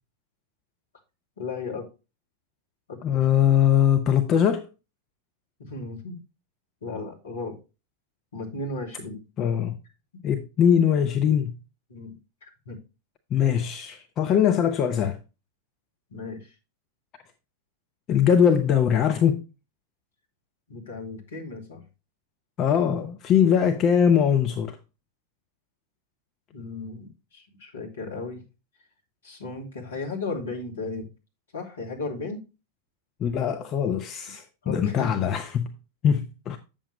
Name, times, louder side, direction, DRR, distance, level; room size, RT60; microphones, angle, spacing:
voice 1, 1.4-1.9 2.9-3.2 5.6-6.2 6.8-7.6 8.3-9.2 11.9-12.8 16.1-16.5 20.7-21.8 23.4-23.6 26.5-28.4 29.2-31.1 31.5-32.4 34.6-35.2, left 3 dB, 70° left, 2.8 m, -35 dB
voice 2, 3.0-4.7 9.4-9.8 10.2-11.6 13.3-15.2 18.1-19.4 22.6-24.8 33.2-35.7 36.0-36.6, left 8 dB, 30° left, 0.8 m, -21 dB
8.7 x 7.0 x 3.1 m
figure-of-eight pair, 90°, 0 cm